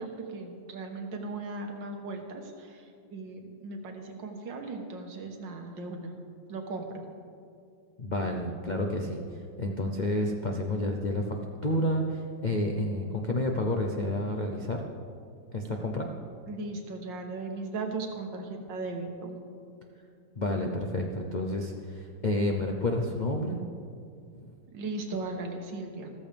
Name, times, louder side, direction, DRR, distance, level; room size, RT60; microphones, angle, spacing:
voice 1, 0.0-6.2 6.5-7.1 16.5-19.4 24.7-26.1, right 3 dB, 75° right, 3 dB, 1.9 m, -37 dB
voice 2, 8.0-11.4 11.6-14.8 15.5-16.1 20.4-23.6 24.4-24.5, left 1 dB, 80° left, 2 dB, 0.4 m, -30 dB
14.0 x 14.0 x 3.5 m, 2.3 s
omnidirectional pair, 2.1 m